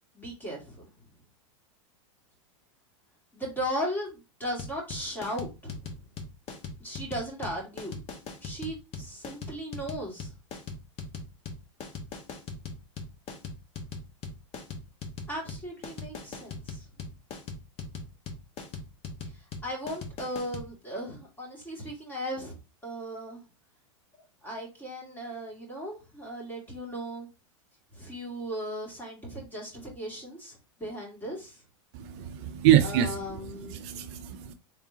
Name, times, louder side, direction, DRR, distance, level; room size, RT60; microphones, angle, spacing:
voice 1, 0.1-0.8 3.3-5.8 6.8-8.0 8.4-10.3 15.3-16.9 19.2-22.5 22.8-23.4 24.4-27.3 27.9-31.6 32.8-33.8, equal, 10° left, 2.3 m, -37 dB
sound 1, 4.6-20.7, left 4 dB, 35° left, 1.1 m, -39 dB
voice 2, 31.9-33.1 33.7-34.5, right 11 dB, 55° right, 0.5 m, -24 dB
3.8 x 3.6 x 2.8 m
hypercardioid pair, 115°, 17 cm